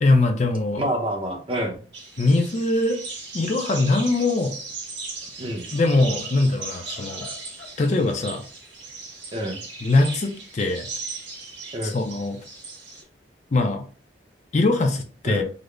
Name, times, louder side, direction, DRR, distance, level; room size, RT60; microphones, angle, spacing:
voice 1, 0.0-0.9 2.2-3.0 3.3-4.5 5.7-7.3 7.8-8.4 9.8-10.9 11.8-12.4 13.5-13.8 14.5-15.4, left 2 dB, 40° left, 4 dB, 0.5 m, -22 dB
voice 2, 0.8-1.8 5.4-5.7 9.3-9.6 11.7-11.9 15.2-15.4, right 1 dB, 30° right, 2 dB, 0.7 m, -27 dB
sound 1, 1.9-13.0, right 3 dB, 85° right, 1.6 m, -37 dB
sound 2, 4.8-5.3 5.7-7.8, left 3 dB, 75° left, 1.2 m, -47 dB
3.9 x 2.0 x 3.2 m, 0.39 s
head